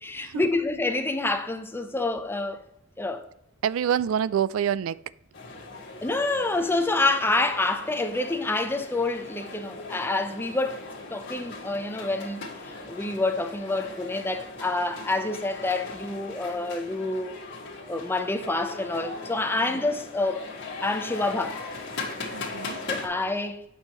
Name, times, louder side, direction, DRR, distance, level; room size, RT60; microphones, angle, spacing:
voice 1, 0.0-2.6 3.0-3.2 6.0-10.8 11.1-17.4 17.9-20.4 20.8-21.6 22.9-23.6, left 2 dB, 10° left, 0.6 m, -27 dB
voice 2, 3.6-5.0 5.5-5.6 19.5-19.9 22.3-22.8, right 9 dB, 80° right, 0.3 m, -27 dB
sound 1, 5.3-23.1, left 3 dB, 60° left, 1.9 m, -39 dB
9.0 x 5.6 x 3.0 m
head